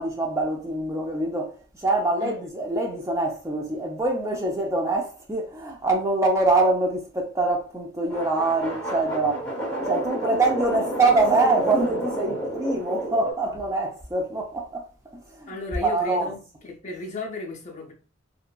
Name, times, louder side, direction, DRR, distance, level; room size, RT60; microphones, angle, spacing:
voice 1, 0.0-1.6 1.8-9.5 9.9-14.8 15.1-15.5 15.8-16.3, right 2 dB, 15° right, 0.5 m, -24 dB
sound 1, 8.1-13.3, right 1 dB, 10° left, 0.9 m, -30 dB
voice 2, 15.5-17.9, left 3 dB, 35° left, 0.5 m, -34 dB
2.8 x 2.5 x 2.3 m
head